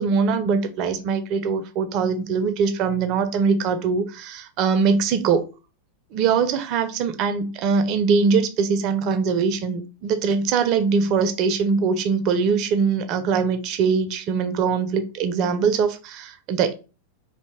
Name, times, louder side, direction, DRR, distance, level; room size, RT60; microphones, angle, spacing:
voice 1, 0.0-5.4 6.1-16.7, right 5 dB, 40° right, 0.4 m, -22 dB
2.6 x 2.1 x 3.0 m
figure-of-eight pair, 90°, 0 cm